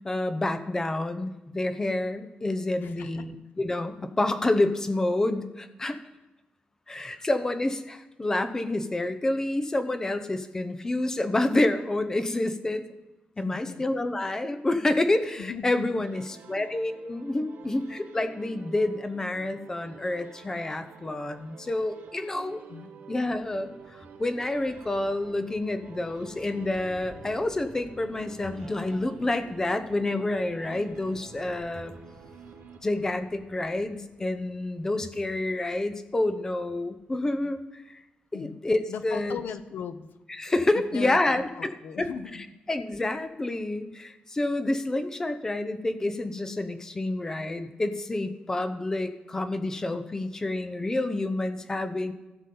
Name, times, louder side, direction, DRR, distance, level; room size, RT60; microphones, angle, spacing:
voice 1, 0.0-6.0 6.9-12.8 13.4-16.2 16.5-22.6 23.1-31.9 32.8-38.0 38.3-39.4 40.4-41.7 42.0-42.1 42.7-52.1, left 2 dB, 15° left, 9 dB, 0.7 m, -28 dB
voice 2, 2.8-3.2 7.1-7.3 13.4-13.9 15.4-16.1 16.5-16.7 22.7-22.9 38.3-38.6 38.9-40.1 40.9-42.5, left 7 dB, 85° left, 11 dB, 0.7 m, -38 dB
sound 1, 16.1-33.3, right 6 dB, 75° right, 1.0 m, -49 dB
sound 2, 23.3-37.3, left 1 dB, 45° left, 3.7 m, -55 dB
16.0 x 7.1 x 3.8 m, 1.1 s
wide cardioid pair, 165°, 3 cm